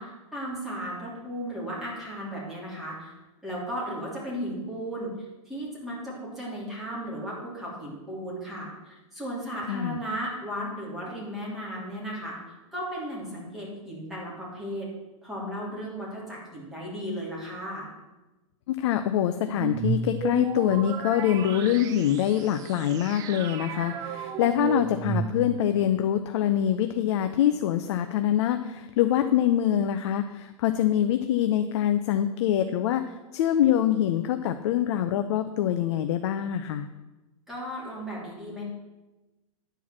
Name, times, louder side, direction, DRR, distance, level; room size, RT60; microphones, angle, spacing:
voice 1, 0.0-3.1 3.4-5.1 5.4-12.4 12.7-14.9 15.2-17.9 37.5-38.6, equal, ahead, -7 dB, 3.0 m, -35 dB
voice 2, 9.7-10.0 18.7-33.0 33.3-36.9, left 11 dB, 50° left, 8 dB, 0.6 m, -25 dB
sound 1, 19.5-25.8, right 7 dB, 20° right, 0.4 m, -33 dB
10.0 x 4.6 x 7.2 m, 1.1 s
hypercardioid pair, 150°, 18 cm